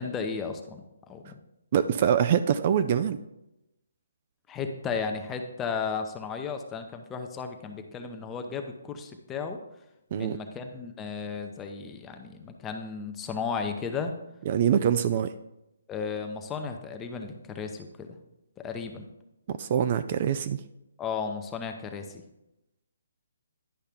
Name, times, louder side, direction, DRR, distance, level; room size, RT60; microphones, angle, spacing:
voice 1, 0.0-1.3 4.5-9.6 10.1-14.1 15.9-18.1 18.6-19.1 21.0-22.2, left 5 dB, 15° left, 5 dB, 0.7 m, -34 dB
voice 2, 1.7-3.2 10.1-10.4 14.5-15.3 19.6-20.6, right 9 dB, 40° right, 12 dB, 0.3 m, -24 dB
10.5 x 5.5 x 3.5 m, 0.90 s
hypercardioid pair, 155°, 0 cm